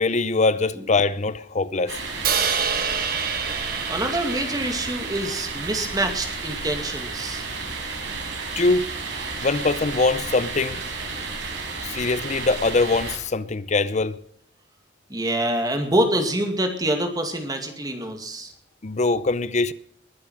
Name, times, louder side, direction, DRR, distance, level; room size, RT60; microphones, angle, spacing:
voice 1, 0.0-1.9 8.6-8.9 9.4-10.8 11.8-14.2 18.8-19.7, left 3 dB, 40° left, 0.6 m, -22 dB
sound 1, 1.9-13.2, right 4 dB, 85° right, 4.7 m, -32 dB
Crash cymbal, 2.2-6.4, right 6 dB, 55° right, 1.7 m, -28 dB
voice 2, 3.9-7.4 15.1-18.5, right 1 dB, 20° right, 2.2 m, -26 dB
21.0 x 7.6 x 6.2 m
head